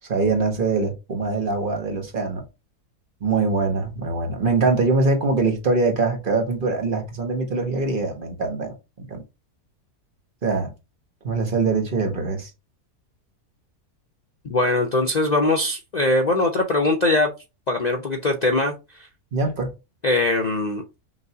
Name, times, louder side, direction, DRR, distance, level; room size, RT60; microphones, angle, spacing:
voice 1, 0.1-2.4 3.2-9.2 10.4-10.7 11.2-12.5 19.3-19.7, right 3 dB, 35° right, 1.1 m, -23 dB
voice 2, 14.4-17.3 17.7-18.7 20.0-20.8, left 2 dB, 85° left, 0.3 m, -21 dB
6.1 x 2.7 x 2.7 m
omnidirectional pair, 1.7 m